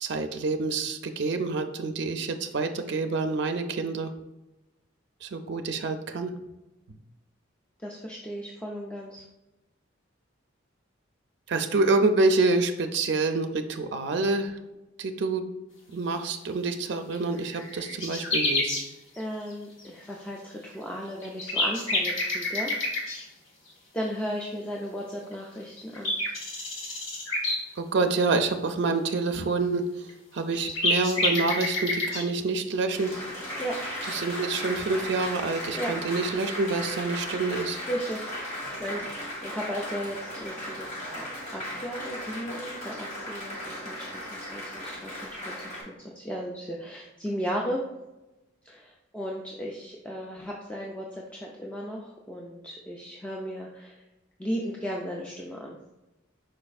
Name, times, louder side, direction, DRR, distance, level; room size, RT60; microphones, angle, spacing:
voice 1, 0.0-4.1 5.2-6.3 6.9-7.0 11.5-14.6 15.0-15.4 15.9-18.8 27.8-29.9 30.3-33.1 34.0-37.8, right 3 dB, 60° right, 6 dB, 0.4 m, -27 dB
voice 2, 7.8-9.2 19.2-22.7 23.9-26.2 33.6-33.8 35.7-35.9 37.9-38.3 38.8-41.3 41.5-47.8 48.6-54.0 54.4-55.8, equal, 5° left, -2 dB, 0.4 m, -35 dB
sound 1, 16.7-16.8 17.1-17.2 17.4-18.8 20.7-20.8 21.2-23.2 25.3-25.4 25.8-27.6 30.1-30.2 30.4-32.2, left 2 dB, 85° left, 1.3 m, -28 dB
Applause, 32.9-45.8, left 1 dB, 35° left, 1.4 m, -36 dB
5.2 x 4.2 x 2.3 m, 0.99 s
head